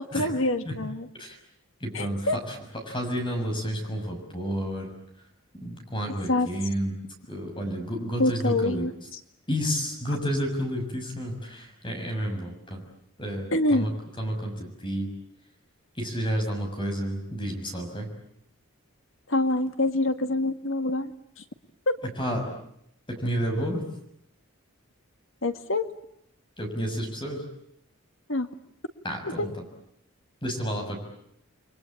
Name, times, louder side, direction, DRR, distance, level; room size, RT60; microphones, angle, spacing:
voice 1, 0.0-1.1 1.9-2.4 6.1-6.7 8.2-9.2 13.5-13.9 19.3-21.1 21.9-22.0 25.4-25.8 28.3-28.5 29.2-29.5, left 2 dB, 65° left, 9 dB, 1.9 m, -26 dB
voice 2, 1.8-2.2 2.9-4.9 5.6-6.9 7.3-8.8 9.5-12.8 13.2-13.9 14.2-15.1 16.0-18.1 22.2-22.4 23.1-23.8 26.6-27.4 29.0-29.5 30.4-31.0, equal, 25° left, 3 dB, 6.4 m, -30 dB
30.0 x 22.5 x 8.6 m, 0.75 s
head